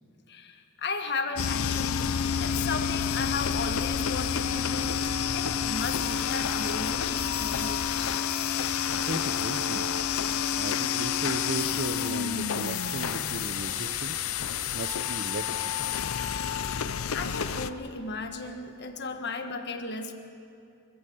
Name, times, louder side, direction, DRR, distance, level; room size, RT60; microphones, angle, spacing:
voice 1, 0.3-2.0 2.4-5.0 5.3-8.2 10.5-10.6 16.6-20.1, left 4 dB, 55° left, 5 dB, 1.4 m, -35 dB
sound 1, 1.4-17.7, left 8 dB, 75° left, 0.6 m, -29 dB
voice 2, 8.9-9.9 10.6-15.7, right 3 dB, 55° right, 12 dB, 0.8 m, -36 dB
25.0 x 15.0 x 7.8 m, 2.5 s
head